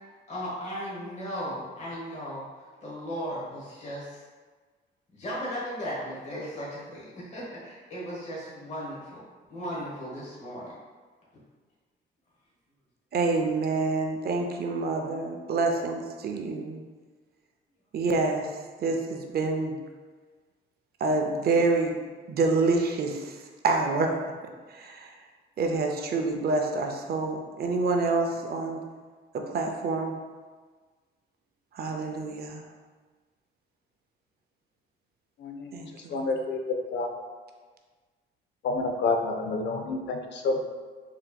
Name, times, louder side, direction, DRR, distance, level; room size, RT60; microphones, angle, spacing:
voice 1, 0.3-2.4 2.8-4.2 5.1-9.2 9.5-10.7, equal, 35° left, -6 dB, 1.0 m, -36 dB
voice 2, 13.1-16.8 17.9-18.5 18.8-19.8 21.0-22.0 22.3-23.4 23.6-24.1 24.7-25.1 25.6-28.8 29.3-30.1 31.7-32.6 35.7-36.3, right 3 dB, 50° right, 3 dB, 0.5 m, -27 dB
voice 3, 35.4-35.8 36.1-36.6 36.9-37.1 38.6-40.6, left 3 dB, 65° left, 3 dB, 0.5 m, -29 dB
4.2 x 2.8 x 2.2 m, 1.4 s
cardioid pair, 90°, 20 cm